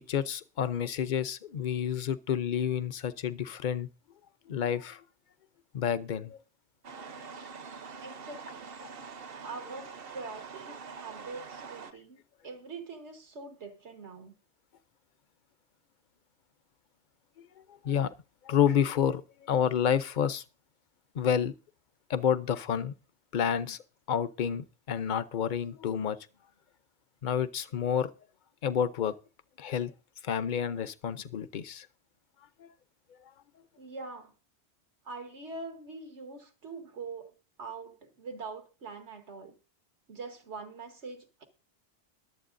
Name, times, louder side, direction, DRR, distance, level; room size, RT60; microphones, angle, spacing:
voice 1, 0.0-3.9 4.5-5.0 5.7-6.4 17.4-17.5 17.8-18.1 18.4-20.4 21.1-21.5 22.1-22.9 23.3-23.8 24.1-26.2 27.2-28.1 28.6-29.2 29.6-29.9 30.2-31.9 32.6-32.7, left 8 dB, 50° left, 0.8 m, -29 dB
sound 1, 6.8-11.9, right 5 dB, 60° right, 1.1 m, -45 dB
voice 2, 8.0-8.7 9.4-14.3 33.8-34.3 35.0-37.3 37.6-39.5 40.1-41.5, right 4 dB, 80° right, 1.7 m, -43 dB
22.5 x 8.0 x 2.6 m
omnidirectional pair, 1.1 m